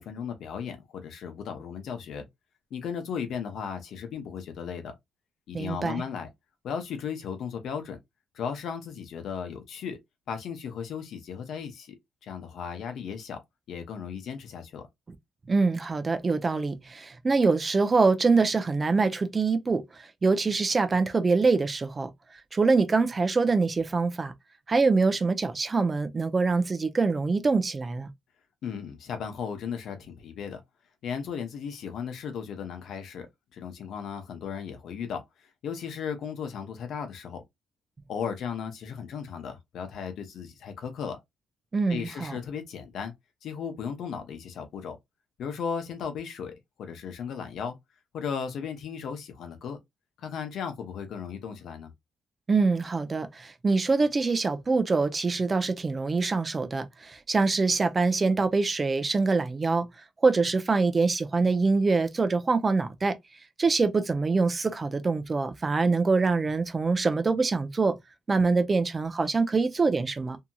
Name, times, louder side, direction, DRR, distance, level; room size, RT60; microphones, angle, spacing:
voice 1, 0.0-2.3 2.7-4.9 5.5-6.3 6.6-8.0 8.3-10.0 10.3-12.0 12.2-13.4 13.7-14.8 28.6-30.6 31.0-37.4 38.1-41.2 41.9-43.1 43.4-45.0 45.4-47.8 48.1-49.8 50.2-51.9, left 7 dB, 70° left, 0.8 m, -36 dB
voice 2, 5.5-6.0 15.5-22.1 22.5-24.3 24.7-28.1 41.7-42.3 52.5-59.9 60.2-63.2 63.6-67.9 68.3-70.4, right 4 dB, 30° right, 0.5 m, -24 dB
2.7 x 2.7 x 2.2 m
cardioid pair, 90°, 0 cm